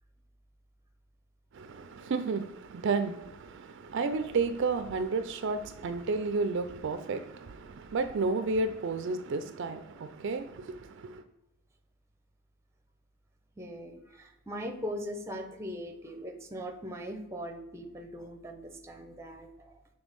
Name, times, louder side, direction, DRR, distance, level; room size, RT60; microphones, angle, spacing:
voice 1, 1.5-11.2, right 4 dB, 55° right, 0.4 m, -32 dB
voice 2, 13.6-19.8, equal, 10° right, 0.6 m, -40 dB
6.2 x 3.3 x 5.3 m
head